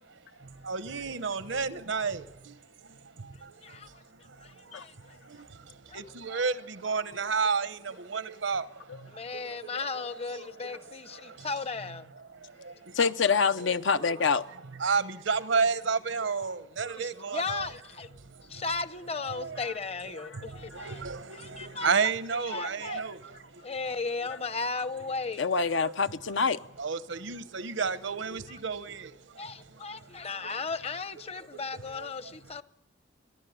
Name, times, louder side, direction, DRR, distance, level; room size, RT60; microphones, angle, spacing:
voice 1, 0.7-2.2 6.2-6.5 6.8-8.6 9.9-10.0 14.1-14.2 14.8-17.7 19.4-19.6 20.8-21.2 21.6-23.2 26.8-28.9, right 5 dB, 90° right, 0.9 m, -30 dB
voice 2, 3.6-4.0 4.4-5.2 5.9-6.0 6.3-6.4 9.1-12.1 16.9-18.1 18.5-21.0 21.3-21.9 22.3-23.0 23.6-25.5 29.4-32.6, left 4 dB, 35° left, 0.7 m, -36 dB
voice 3, 12.9-14.4 20.2-20.4 25.4-26.6, left 5 dB, 85° left, 0.7 m, -26 dB
29.0 x 11.0 x 9.3 m
head